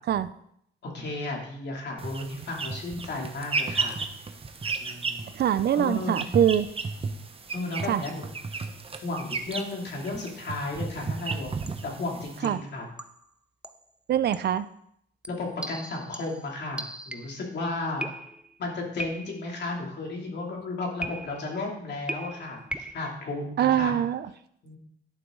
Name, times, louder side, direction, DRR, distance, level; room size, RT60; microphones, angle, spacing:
voice 1, 0.8-4.0 4.8-5.3 5.7-6.2 7.5-8.3 9.0-11.5 11.8-12.9 15.3-18.1 18.6-24.0 24.6-24.8, left 2 dB, 60° left, -1 dB, 2.9 m, -34 dB
sound 1, 2.0-12.4, right 4 dB, 30° right, 1.0 m, -34 dB
voice 2, 5.3-6.7 7.9-8.0 12.4-12.6 14.1-14.7 23.6-24.3, right 10 dB, 55° right, 15 dB, 0.5 m, -23 dB
sound 2, 10.9-11.2 11.7-12.0 12.4-13.3 13.6-13.9 14.3-14.6 15.2-17.5 18.0-18.6 19.0-19.6 21.0-21.6 22.1-23.1, right 1 dB, 5° right, 0.5 m, -39 dB
11.5 x 6.1 x 3.8 m, 0.71 s
cardioid pair, 90°, 20 cm